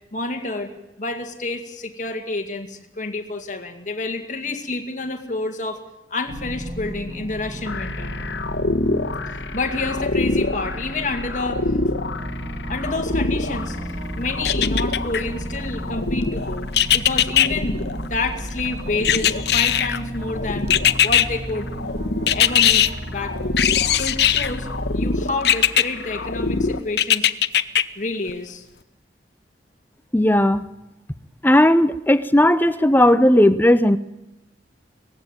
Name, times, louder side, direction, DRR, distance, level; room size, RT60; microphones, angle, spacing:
voice 1, 0.1-0.7 1.0-5.8 6.1-8.2 9.3-11.7 12.7-20.7 21.0-21.7 22.3-24.7 24.9-27.3 28.0-28.6, left 3 dB, 45° left, 5 dB, 2.2 m, -29 dB
sound 1, 6.3-24.9, equal, 35° right, 3.7 m, -33 dB
sound 2, 7.6-26.8, left 2 dB, 85° left, 1.3 m, -28 dB
sound 3, 14.4-15.2 16.7-17.5 19.0-20.0 20.7-21.3 22.3-22.9 23.6-24.5 25.4-25.8 27.0-27.8 28.3-28.4, left 10 dB, 65° left, 0.7 m, -18 dB
voice 2, 30.1-30.7 31.4-34.0, left 1 dB, 10° left, 13 dB, 0.7 m, -16 dB
19.0 x 15.5 x 9.1 m, 0.95 s
head